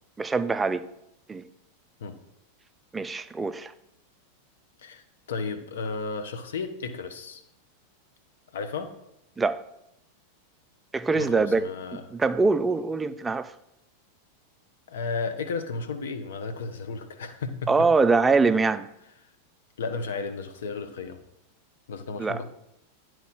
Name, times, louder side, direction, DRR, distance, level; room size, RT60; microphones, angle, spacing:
voice 1, 0.2-0.8 1.3-1.4 2.9-3.7 9.4-9.6 10.9-11.7 12.1-13.5 17.7-18.9 22.2-22.4, right 4 dB, 15° right, 0.4 m, -23 dB
voice 2, 5.3-7.4 8.5-8.9 11.1-12.0 14.9-17.9 19.8-21.2 21.9-22.4, left 4 dB, 60° left, 0.8 m, -33 dB
10.5 x 4.6 x 4.1 m
figure-of-eight pair, 90°, 0 cm